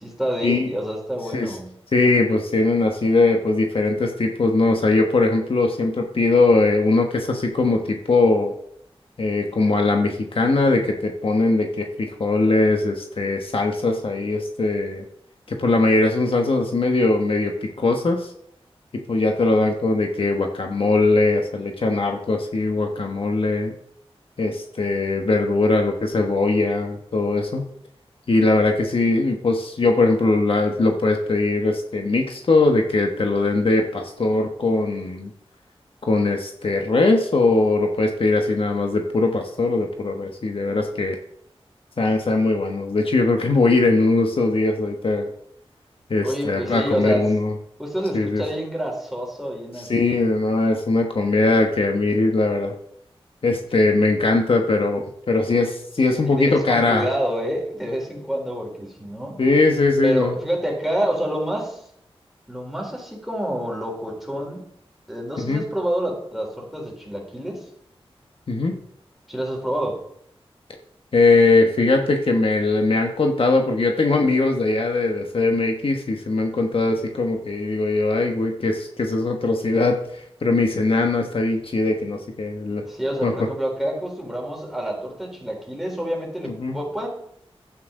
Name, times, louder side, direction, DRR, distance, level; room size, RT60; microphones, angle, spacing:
voice 1, 0.0-1.7 46.2-47.2 47.8-50.2 56.5-59.4 60.0-61.8 62.5-64.7 65.1-67.6 69.3-70.0 82.8-87.1, right 1 dB, ahead, -1 dB, 3.8 m, -27 dB
voice 2, 1.9-8.5 9.2-15.0 15.5-18.3 19.1-23.7 24.4-27.7 28.3-35.3 36.0-41.2 42.0-45.3 46.1-47.5 48.1-48.4 49.8-52.7 53.4-57.1 59.4-60.4 65.4-65.6 68.5-68.8 71.1-82.8 83.2-83.3 86.5-86.8, left 3 dB, 65° left, 3 dB, 1.3 m, -20 dB
11.5 x 8.7 x 3.8 m, 0.70 s
wide cardioid pair, 80°, 10 cm